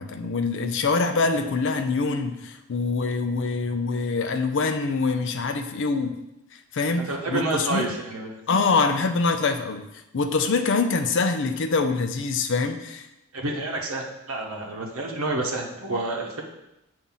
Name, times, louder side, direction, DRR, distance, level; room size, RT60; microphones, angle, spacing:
voice 1, 0.0-6.2 6.7-7.9 8.5-9.9 10.1-13.0, left 4 dB, 55° left, 7 dB, 0.5 m, -24 dB
voice 2, 7.0-8.4 13.3-16.4, right 2 dB, 65° right, -1 dB, 0.9 m, -29 dB
7.3 x 2.7 x 5.5 m, 0.90 s
head